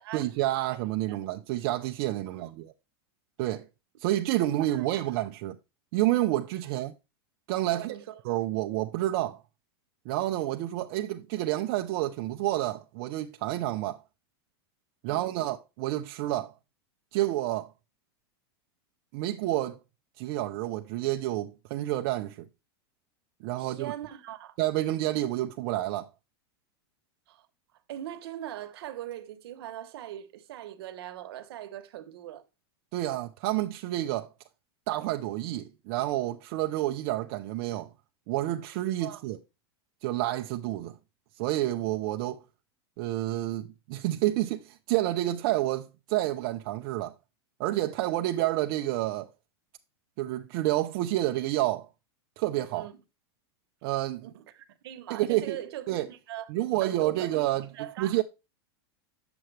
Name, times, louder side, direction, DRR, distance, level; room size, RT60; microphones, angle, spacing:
voice 1, 0.1-2.7 3.4-3.6 4.0-5.6 5.9-6.9 7.5-7.9 8.2-9.4 10.1-14.0 15.0-16.5 17.1-17.7 19.1-19.8 20.2-22.5 23.4-23.9 24.6-26.1 32.9-34.3 34.9-37.9 38.3-39.4 40.0-41.0 41.4-42.4 43.0-47.1 47.6-49.3 50.2-51.9 52.4-52.9 53.8-54.3 55.1-55.6 55.9-56.1 56.5-57.7 58.0-58.2, right 15 dB, 50° right, 0.6 m, -29 dB
voice 2, 4.5-4.9 6.6-6.8 7.7-8.2 15.1-15.3 23.6-24.6 27.3-27.5 27.9-32.4 39.0-39.2 52.7-53.0 54.2-56.5 56.8-58.2, right 12 dB, 75° right, 1.1 m, -41 dB
8.9 x 6.9 x 3.3 m
supercardioid pair, 140°, 13 cm